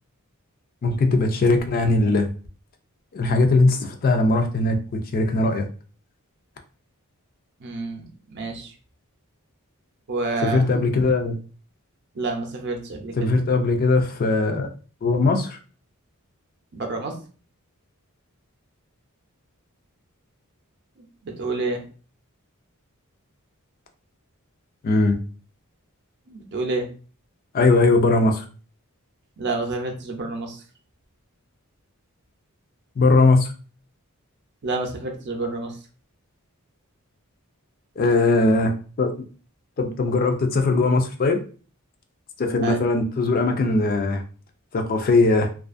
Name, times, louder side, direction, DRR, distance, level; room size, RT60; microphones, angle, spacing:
voice 1, 0.8-2.3 3.1-5.7 10.4-11.4 13.2-14.7 15.0-15.6 24.8-25.2 27.5-28.4 33.0-33.5 38.0-39.1 39.8-41.4 42.4-44.2 44.7-45.5, left 3 dB, 40° left, 5 dB, 0.3 m, -20 dB
voice 2, 7.6-8.7 10.1-10.7 12.1-13.4 16.7-17.2 21.0-21.8 26.3-26.9 29.4-30.6 34.6-35.8 42.6-42.8, right 3 dB, 50° right, 3 dB, 0.5 m, -29 dB
2.4 x 2.4 x 2.4 m, 0.38 s
head